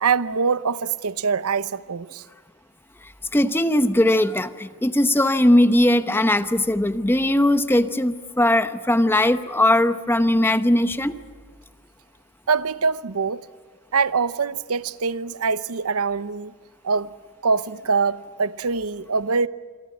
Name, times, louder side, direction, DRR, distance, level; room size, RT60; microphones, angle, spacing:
voice 1, 0.0-2.2 12.5-13.4 13.9-16.5 16.8-17.1 17.4-19.5, right 5 dB, 90° right, 0.8 m, -23 dB
voice 2, 3.3-11.2, left 1 dB, 10° left, 0.8 m, -19 dB
27.0 x 24.0 x 7.4 m
head